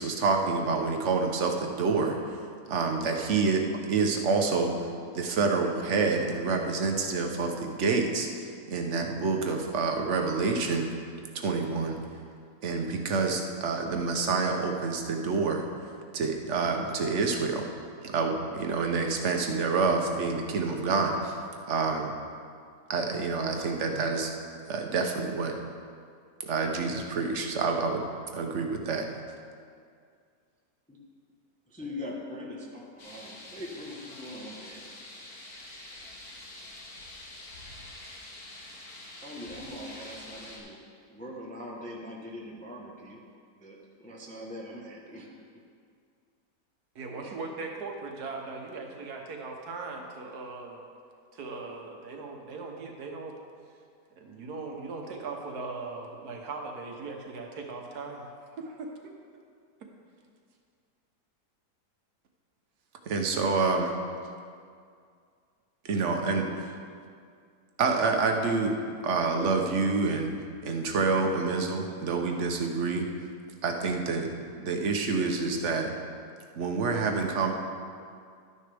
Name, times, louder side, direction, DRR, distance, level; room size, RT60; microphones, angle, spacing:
voice 1, 0.0-2.2 2.7-4.7 5.1-10.9 11.3-12.0 12.6-15.6 16.1-17.7 18.0-21.4 21.7-22.1 22.9-24.3 24.7-25.6 26.4-28.0 28.3-29.1 63.1-63.9 65.8-66.5 67.8-68.8 69.0-70.3 70.6-73.1 73.6-74.3 74.6-75.9 76.6-77.5, right 4 dB, 50° right, 3 dB, 1.1 m, -27 dB
voice 2, 31.7-34.8 39.2-40.8 41.1-43.2 43.6-45.3, left 1 dB, 5° left, -3 dB, 0.9 m, -42 dB
sound 1, 33.0-40.6, left 1 dB, 65° left, 2.2 m, -46 dB
voice 3, 46.9-50.8 51.3-53.3 54.2-59.1, right 3 dB, 70° right, 2 dB, 1.5 m, -39 dB
12.0 x 9.7 x 3.4 m, 2.2 s
omnidirectional pair, 1.7 m